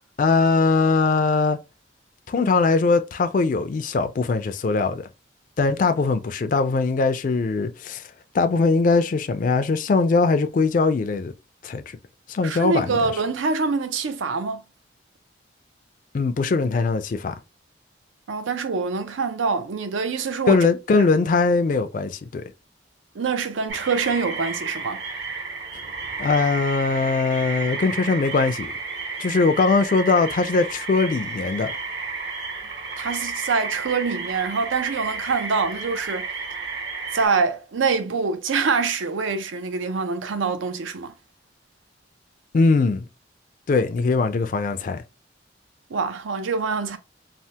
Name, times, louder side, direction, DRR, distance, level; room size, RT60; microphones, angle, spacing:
voice 1, 0.2-1.6 2.3-5.1 5.6-8.0 8.3-11.3 11.6-11.8 12.3-13.1 16.1-17.3 20.5-22.4 26.2-28.7 29.2-31.7 42.5-43.1 43.7-45.0, left 4 dB, 45° left, 0.3 m, -21 dB
voice 2, 12.4-14.6 18.3-20.7 21.0-21.1 23.1-25.0 33.0-36.3 37.1-41.1 45.9-47.0, right 4 dB, 85° right, 0.5 m, -25 dB
sound 1, 23.7-37.3, right 4 dB, 60° right, 1.0 m, -32 dB
3.3 x 2.1 x 2.7 m
head